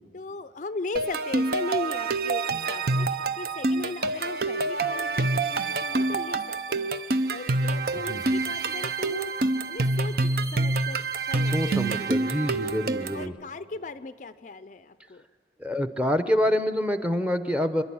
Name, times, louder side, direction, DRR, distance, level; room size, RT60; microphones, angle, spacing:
voice 1, 0.1-6.9 7.3-9.3 9.7-12.3 13.1-15.2, left 3 dB, 40° left, 12 dB, 0.4 m, -38 dB
sound 1, 1.0-13.3, right 3 dB, 55° right, 0.7 m, -27 dB
voice 2, 11.5-13.3 15.6-17.8, equal, 5° right, 9 dB, 0.8 m, -26 dB
27.0 x 11.0 x 8.7 m, 2.2 s
head